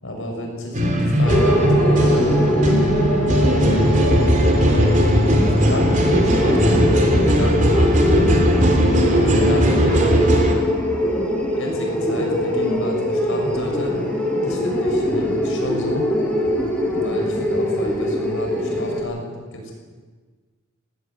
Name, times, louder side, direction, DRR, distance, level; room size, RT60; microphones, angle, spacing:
voice 1, 0.0-2.4 3.7-4.4 4.7-8.0 9.1-10.1 11.5-13.9 14.4-16.1 17.0-19.7, left 1 dB, 65° left, 1 dB, 6.7 m, -31 dB
sound 1, 0.7-10.6, equal, 35° right, 3.4 m, -18 dB
sound 2, 1.2-19.0, equal, 5° left, 4.0 m, -22 dB
18.5 x 17.0 x 9.7 m, 1.5 s
head